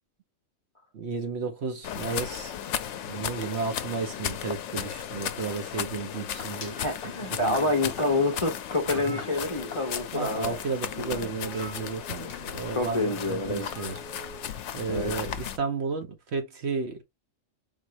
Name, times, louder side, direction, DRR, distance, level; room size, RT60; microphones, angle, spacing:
voice 1, 0.9-2.6 3.0-6.8 7.3-7.6 9.1-9.2 10.1-14.0 14.7-17.0, right 4 dB, 60° right, 1.1 m, -33 dB
sound 1, 1.8-15.6, left 9 dB, 70° left, 0.8 m, -35 dB
sound 2, 4.7-5.9 6.4-7.3 7.9-8.0 8.4-8.5 8.6-10.0 10.3-10.5 11.4-12.4 13.6-14.5, right 1 dB, 30° right, 1.4 m, -48 dB
sound 3, 6.4-11.0 11.5-11.7 12.3-12.6, left 5 dB, 55° left, 1.1 m, -45 dB
voice 2, 6.6-10.6 10.9-11.3 12.7-13.7 14.8-15.1, left 2 dB, 30° left, 0.7 m, -28 dB
4.1 x 2.5 x 2.9 m
omnidirectional pair, 1.3 m